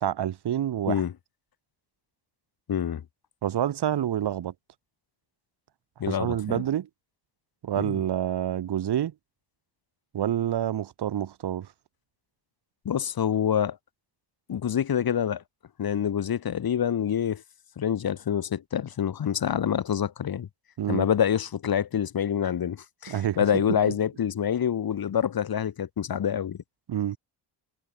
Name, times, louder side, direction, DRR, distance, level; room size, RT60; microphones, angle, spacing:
voice 1, 0.0-1.0 3.4-4.5 6.1-6.9 7.6-9.1 10.1-11.7 20.8-21.1 23.1-23.9 26.9-27.2, right 10 dB, 60° right, 2.2 m, -28 dB
voice 2, 2.7-3.0 6.0-6.6 7.8-8.0 12.8-13.8 14.5-15.4 15.8-17.4 17.8-20.5 20.9-26.6, left 9 dB, 50° left, 4.4 m, -26 dB
wide cardioid pair, 170°, 44 cm